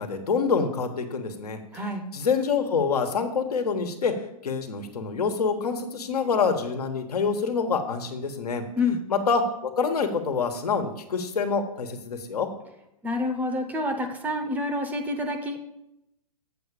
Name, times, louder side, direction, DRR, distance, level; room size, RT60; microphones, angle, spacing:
voice 1, 0.0-1.8 2.1-4.1 4.4-8.6 9.1-12.5, left 5 dB, 85° left, 5 dB, 1.4 m, -26 dB
voice 2, 13.0-15.6, left 2 dB, 10° right, 6 dB, 0.6 m, -28 dB
7.7 x 4.9 x 6.8 m, 0.84 s
hypercardioid pair, 145°, 19 cm